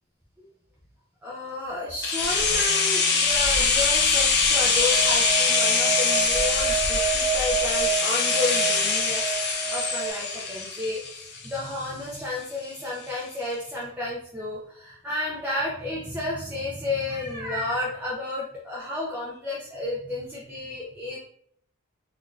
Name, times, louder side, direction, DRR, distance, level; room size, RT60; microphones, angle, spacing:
voice 1, 1.2-21.2, left 2 dB, 10° right, -7 dB, 0.4 m, -32 dB
sound 1, 2.0-11.9 12.1-12.2, left 4 dB, 45° left, 0.6 m, -23 dB
sound 2, 4.8-10.1, right 11 dB, 10° left, 0.8 m, -30 dB
3.9 x 2.6 x 2.3 m, 0.64 s
head